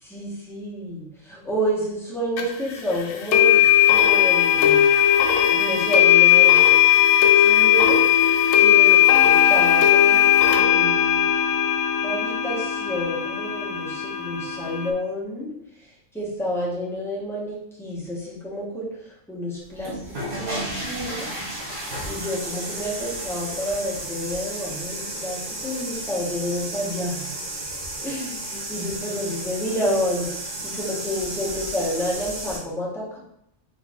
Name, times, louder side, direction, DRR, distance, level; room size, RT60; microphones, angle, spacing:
voice 1, 0.0-4.8 5.5-6.6 7.4-8.0 8.6-11.3 12.0-15.5 16.1-21.3 22.0-27.3 28.0-30.3 30.6-33.2, equal, ahead, -6 dB, 1.1 m, -29 dB
sound 1, 2.4-2.5 3.3-14.9, left 10 dB, 85° left, 1.0 m, -17 dB
sound 2, 19.7-32.6, right 1 dB, 55° right, 1.4 m, -33 dB
3.9 x 3.2 x 3.6 m, 0.78 s
omnidirectional pair, 1.3 m